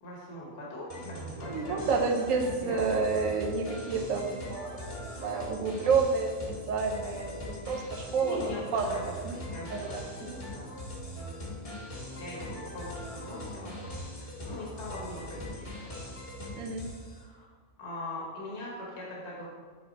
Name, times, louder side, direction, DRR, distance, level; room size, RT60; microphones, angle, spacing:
voice 1, 0.0-2.0 2.6-3.0 8.2-10.7 12.1-13.7 14.1-16.0 17.1-17.5 17.8-19.5, left 1 dB, 55° left, -5 dB, 1.7 m, -41 dB
sound 1, 0.9-17.2, left 1 dB, 25° left, 1.2 m, -41 dB
voice 2, 1.5-6.3 6.7-9.4 9.7-10.0 10.3-10.4 16.5-16.9, right 4 dB, 75° right, 2 dB, 1.2 m, -30 dB
8.4 x 4.0 x 4.1 m, 1.5 s
omnidirectional pair, 1.4 m